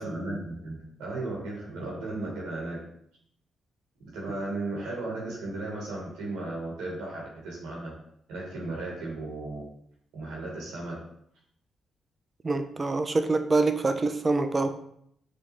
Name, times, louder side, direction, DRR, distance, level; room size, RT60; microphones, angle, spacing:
voice 1, 0.0-2.8 4.0-7.9 8.3-9.7 10.1-11.0, right 2 dB, 85° right, -3 dB, 1.4 m, -35 dB
voice 2, 12.4-14.8, right 3 dB, 35° right, 8 dB, 0.4 m, -25 dB
5.3 x 2.3 x 3.1 m, 0.71 s
supercardioid pair, 50°, 0 cm